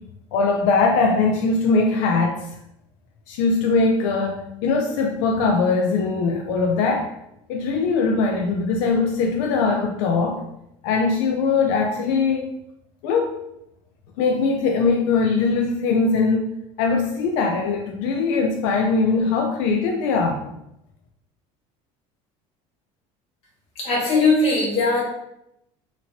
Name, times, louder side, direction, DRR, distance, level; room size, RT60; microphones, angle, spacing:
voice 1, 0.3-2.5 3.3-7.1 7.5-10.4 10.8-12.6 13.0-13.3 14.2-16.5 16.8-20.4, left 4 dB, 90° left, 2 dB, 0.4 m, -21 dB
voice 2, 23.7-25.0, left 3 dB, 45° left, -5 dB, 1.5 m, -19 dB
2.9 x 2.8 x 2.7 m, 0.81 s
cardioid pair, 160°, 14 cm